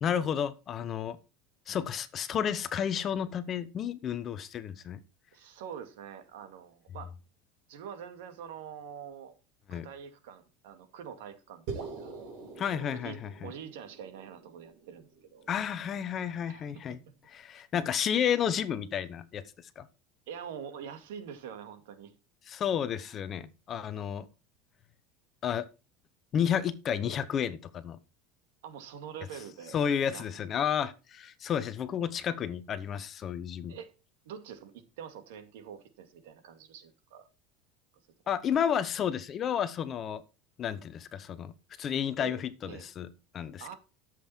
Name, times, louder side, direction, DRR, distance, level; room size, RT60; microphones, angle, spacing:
voice 1, 0.0-1.2 1.7-5.0 9.7-9.9 12.6-13.5 15.5-17.0 17.3-19.4 19.8-19.9 22.5-24.3 25.4-25.6 26.3-28.0 29.7-33.8 38.3-40.2 40.6-41.5 41.8-43.1 43.3-43.7, left 8 dB, 25° left, 0.8 m, -31 dB
voice 2, 5.3-7.1 7.7-9.4 9.7-12.2 12.7-15.5 16.5-16.7 20.3-22.1 23.9-24.1 28.6-30.3 33.7-33.9 34.2-37.3 42.2-42.9 43.6-43.7, right 8 dB, 80° right, 2.3 m, -45 dB
sound 1, 11.7-16.1, right 4 dB, 50° right, 3.8 m, -44 dB
12.5 x 7.6 x 4.4 m
cardioid pair, 175°, 0 cm